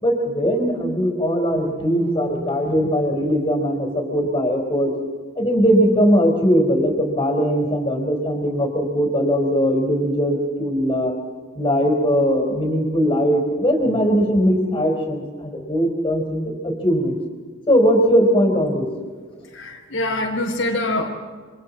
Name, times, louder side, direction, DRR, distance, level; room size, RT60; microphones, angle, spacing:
voice 1, 0.0-4.9 5.4-11.1 11.6-17.2 17.7-18.9 19.4-19.5, equal, 25° left, 1 dB, 4.3 m, -20 dB
voice 2, 19.5-21.1, left 2 dB, 90° left, -1 dB, 3.2 m, -24 dB
27.5 x 25.0 x 4.3 m, 1.6 s
head